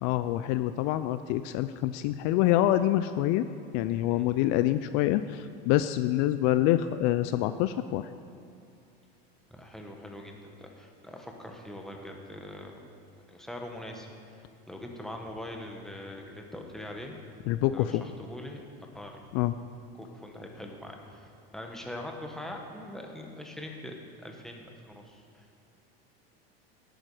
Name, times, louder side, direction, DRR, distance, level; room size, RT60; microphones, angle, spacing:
voice 1, 0.0-3.5 3.7-8.1 17.5-18.0 19.3-19.5, left 14 dB, 60° left, 12 dB, 0.5 m, -26 dB
voice 2, 9.5-12.8 13.3-17.2 17.7-18.6 18.9-19.2 20.0-25.6, left 1 dB, ahead, 1 dB, 1.5 m, -42 dB
11.5 x 8.9 x 5.0 m, 2.7 s
supercardioid pair, 105°, 31 cm